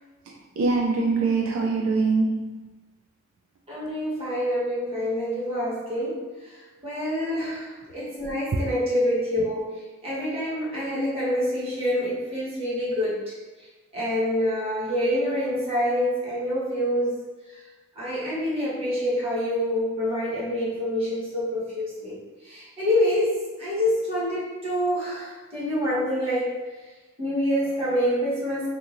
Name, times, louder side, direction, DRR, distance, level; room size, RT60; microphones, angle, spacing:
voice 1, 0.3-2.6, right 3 dB, 75° right, 0 dB, 0.3 m, -24 dB
voice 2, 3.7-6.3 6.8-9.7 10.0-13.2 13.9-17.2 18.0-22.2 22.4-26.6 27.2-28.7, equal, 30° right, -8 dB, 1.0 m, -26 dB
2.9 x 2.7 x 2.5 m, 1.3 s
head